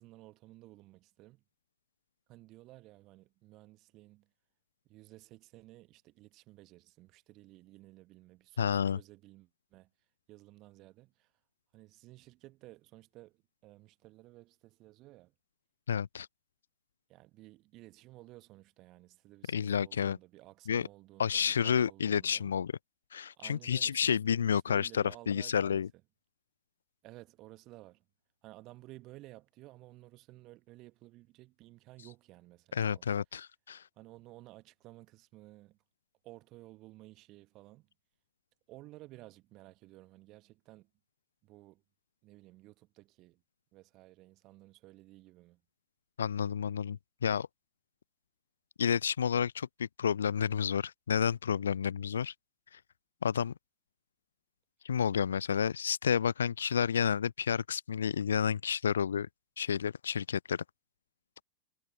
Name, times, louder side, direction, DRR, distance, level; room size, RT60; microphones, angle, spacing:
voice 1, 0.0-1.4 2.3-4.3 4.8-9.9 10.3-11.3 11.7-15.3 17.1-22.5 23.4-25.8 27.0-28.0 28.4-33.1 34.0-35.8 36.2-37.9 38.7-40.9 41.4-41.8 42.2-43.4 43.7-45.6, right 18 dB, 40° right, 1.2 m, -55 dB
voice 2, 8.6-9.0 15.9-16.3 19.5-20.2 20.7-20.9 21.2-22.7 23.1-25.9 32.7-33.8 46.2-47.5 48.8-52.3 52.7-52.8 53.2-53.5 54.8-59.3 59.6-60.6, left 7 dB, 70° left, 0.4 m, -30 dB
figure-of-eight pair, 90°, 0 cm